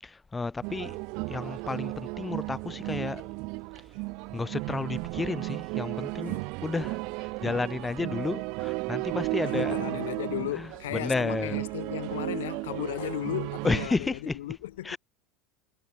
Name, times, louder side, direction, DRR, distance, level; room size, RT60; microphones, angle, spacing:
voice 1, 0.0-1.0 1.3-3.3 4.3-9.8 10.5-11.6 13.6-14.4 14.8-15.0, left 3 dB, 15° left, 4.8 m, -32 dB
sound 1, 0.6-13.9, right 28 dB, 60° right, 6.5 m, -34 dB
voice 2, 9.4-15.0, left 15 dB, 90° left, 2.1 m, -35 dB
supercardioid pair, 115°, 0 cm